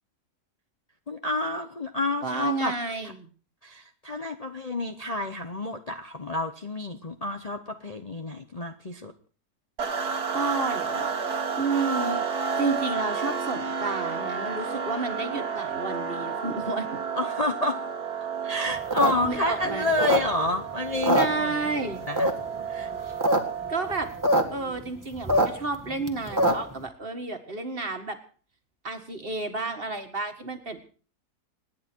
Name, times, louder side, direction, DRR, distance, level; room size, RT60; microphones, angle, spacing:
voice 1, 1.1-2.7 3.6-9.1 17.2-17.8 18.4-21.7 22.1-22.3 22.7-22.9, left 2 dB, 30° left, 5 dB, 0.9 m, -29 dB
voice 2, 2.2-3.3 10.3-11.1 11.6-12.2 12.6-17.0 19.2-19.9 21.1-22.0 23.7-24.1 24.5-28.2 28.8-30.9, right 3 dB, 35° right, 6 dB, 1.9 m, -31 dB
sound 1, 9.8-24.3, right 5 dB, 75° right, 2.1 m, -31 dB
sound 2, 18.8-20.6 20.9-21.8 22.2-22.6 23.0-23.4 23.6-23.7 23.9-24.4 24.8-26.8, right 1 dB, 10° right, 1.8 m, -23 dB
26.5 x 10.0 x 4.6 m, 0.40 s
omnidirectional pair, 1.7 m